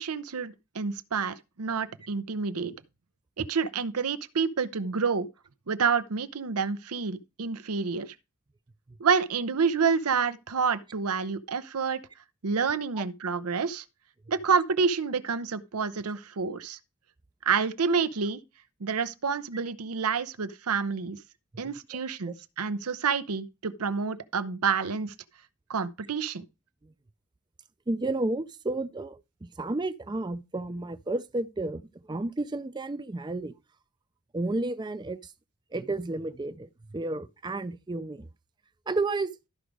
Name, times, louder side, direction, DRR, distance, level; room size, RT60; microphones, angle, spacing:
voice 1, 0.0-2.7 3.4-5.3 5.7-8.1 9.0-12.0 12.4-13.8 14.3-16.8 17.4-18.4 18.8-21.2 21.6-25.1 25.7-26.4, right 5 dB, 85° right, 0.7 m, -28 dB
voice 2, 27.9-33.5 34.3-35.3 35.7-38.3 38.9-39.3, right 2 dB, 20° right, 0.4 m, -32 dB
13.0 x 5.1 x 4.7 m
head